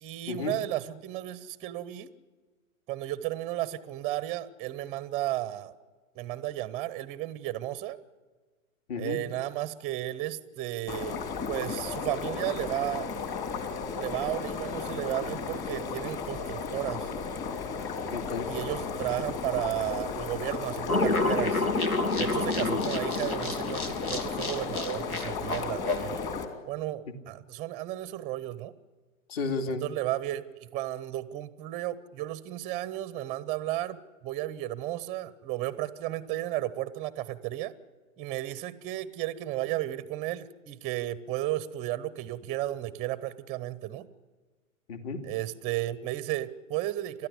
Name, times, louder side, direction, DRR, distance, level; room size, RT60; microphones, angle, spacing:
voice 1, 0.0-2.1 2.9-5.7 6.2-8.0 9.0-13.1 13.9-17.1 18.5-21.7 22.2-26.2 26.7-28.7 29.8-37.7 38.2-44.1 45.2-47.3, right 15 dB, 15° right, 16 dB, 0.7 m, -34 dB
sound 1, 10.9-26.5, left 5 dB, 25° left, 3.0 m, -34 dB
voice 2, 18.1-18.5 22.6-22.8 29.3-29.8 44.9-45.2, left 4 dB, 45° left, 7 dB, 2.6 m, -32 dB
sound 2, 20.9-26.1, left 2 dB, 85° left, 2.5 m, -29 dB
30.0 x 13.0 x 9.8 m, 1.4 s
hypercardioid pair, 125°, 42 cm